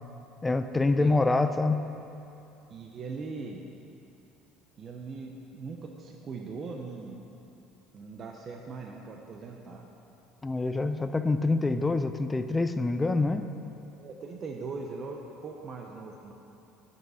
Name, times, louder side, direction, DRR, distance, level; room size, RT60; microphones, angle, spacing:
voice 1, 0.4-1.8 10.4-13.5, left 3 dB, 15° left, 9 dB, 0.4 m, -26 dB
voice 2, 2.7-3.6 4.8-7.2 7.9-9.9 14.0-16.3, right 4 dB, 35° right, 1 dB, 0.6 m, -40 dB
7.4 x 5.5 x 6.3 m, 2.8 s
cardioid pair, 125°, 0 cm